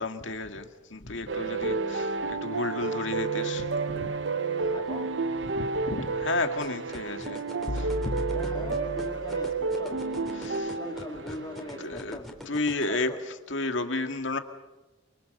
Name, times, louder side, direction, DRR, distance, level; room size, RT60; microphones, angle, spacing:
voice 1, 0.0-3.7 3.9-4.1 5.6-7.4 7.7-7.9 10.4-11.4 11.8-12.2 12.5-13.1 13.5-14.4, left 3 dB, 75° left, 6 dB, 2.0 m, -32 dB
sound 1, 1.3-11.9, right 4 dB, 70° right, 0.9 m, -31 dB
voice 2, 4.4-5.2 8.2-10.0 10.7-12.3 12.9-13.2, left 1 dB, 20° left, 2 dB, 3.1 m, -41 dB
sound 2, 6.6-12.8, equal, ahead, 3.4 m, -41 dB
sound 3, 7.7-9.8, left 1 dB, 40° left, 0.8 m, -35 dB
29.5 x 24.0 x 6.6 m, 1.1 s
head